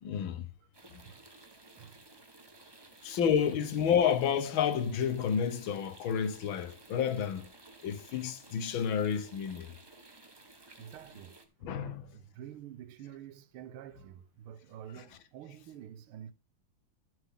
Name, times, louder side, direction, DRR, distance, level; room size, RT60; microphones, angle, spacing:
voice 1, 0.0-0.5 0.9-1.0 3.0-7.5 7.8-9.7 11.6-12.1, left 8 dB, 70° left, 1.7 m, -30 dB
sound 1, 0.7-11.4, right 2 dB, 15° right, 0.9 m, -56 dB
voice 2, 1.7-2.0 2.6-2.9 10.8-16.3, right 10 dB, 80° right, 1.7 m, -49 dB
11.5 x 7.7 x 3.7 m
omnidirectional pair, 2.3 m